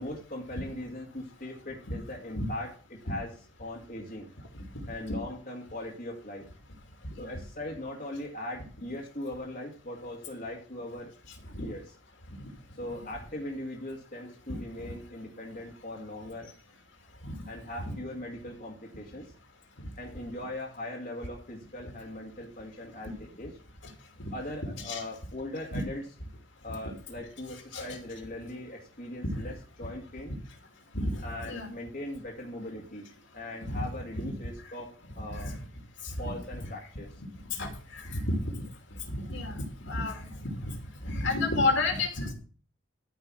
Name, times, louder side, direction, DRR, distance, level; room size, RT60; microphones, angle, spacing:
voice 1, 0.0-4.3 4.9-6.5 7.2-11.1 11.6-11.9 12.8-16.5 17.5-19.3 20.0-23.5 24.3-26.1 26.6-30.4 31.2-33.1 33.3-35.5 36.2-37.1, left 1 dB, 40° left, -1 dB, 2.0 m, -40 dB
voice 2, 38.0-38.4 39.1-39.6 39.9-40.2 40.6-40.7 41.0-42.3, left 2 dB, 60° left, 4 dB, 2.7 m, -29 dB
13.5 x 5.5 x 6.2 m, 0.39 s
head